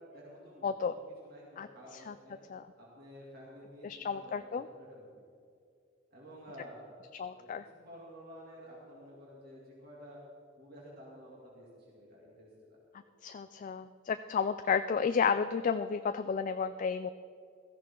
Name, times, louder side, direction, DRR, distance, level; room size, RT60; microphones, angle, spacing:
voice 1, 0.0-2.4 2.8-5.1 6.1-6.9 7.3-10.2 10.6-12.8, equal, 55° right, -5 dB, 2.7 m, -52 dB
voice 2, 0.6-0.9 1.6-1.7 2.1-2.2 2.5-2.6 3.8-4.7 7.2-7.6 13.2-17.1, left 6 dB, 40° left, 10 dB, 0.3 m, -32 dB
16.0 x 14.0 x 3.8 m, 2.4 s
head